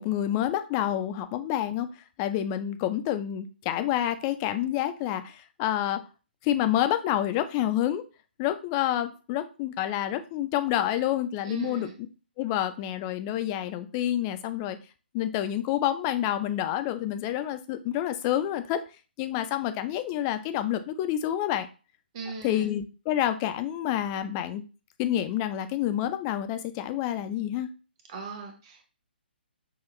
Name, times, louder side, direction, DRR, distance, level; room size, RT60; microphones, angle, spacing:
voice 1, 0.0-1.9 2.2-6.0 6.4-8.0 8.4-11.9 12.4-14.8 15.1-18.8 19.2-21.7 22.4-24.6 25.0-27.7, left 12 dB, 20° left, 9 dB, 0.4 m, -28 dB
voice 2, 11.4-12.0 22.1-22.7 28.1-28.8, right 5 dB, 30° right, 2 dB, 1.1 m, -39 dB
5.8 x 2.3 x 3.0 m, 0.33 s
figure-of-eight pair, 135°, 6 cm